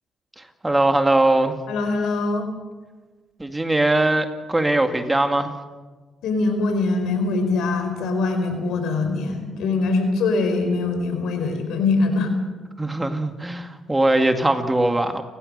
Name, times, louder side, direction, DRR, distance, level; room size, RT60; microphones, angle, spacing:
voice 1, 0.4-1.6 3.4-5.5 12.8-15.2, right 2 dB, 15° right, 6 dB, 2.0 m, -21 dB
voice 2, 1.7-2.4 6.2-12.3, left 3 dB, 85° left, 6 dB, 4.7 m, -23 dB
30.0 x 15.0 x 6.8 m, 1.3 s
cardioid pair, 90°, 0 cm